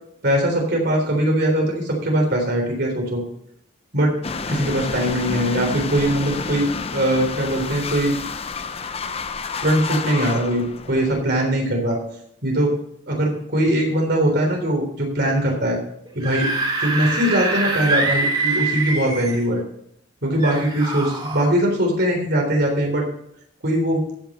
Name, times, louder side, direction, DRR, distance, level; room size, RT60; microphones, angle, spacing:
voice 1, 0.2-3.2 3.9-4.1 4.5-8.1 9.6-12.0 12.4-12.7 13.1-15.8 16.1-16.5 16.8-19.6 20.2-23.0 23.6-24.0, right 1 dB, 60° right, 1 dB, 3.7 m, -21 dB
sound 1, 4.2-11.2, left 4 dB, 30° left, 0.6 m, -29 dB
Screaming / Screech, 16.0-19.4 20.4-21.5, right 3 dB, 30° right, 3.4 m, -24 dB
15.0 x 5.8 x 5.5 m, 0.71 s
head